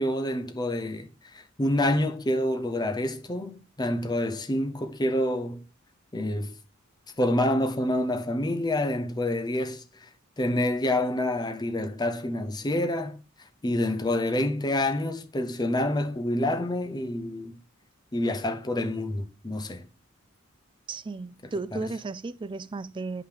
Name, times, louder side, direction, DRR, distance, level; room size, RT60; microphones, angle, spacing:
voice 1, 0.0-5.6 6.1-6.6 7.2-10.1 10.4-13.2 13.6-17.5 18.1-19.9 21.7-21.9, left 1 dB, 20° left, 0.7 m, -27 dB
voice 2, 20.9-23.2, right 3 dB, 25° right, 0.3 m, -34 dB
9.7 x 5.7 x 3.4 m
head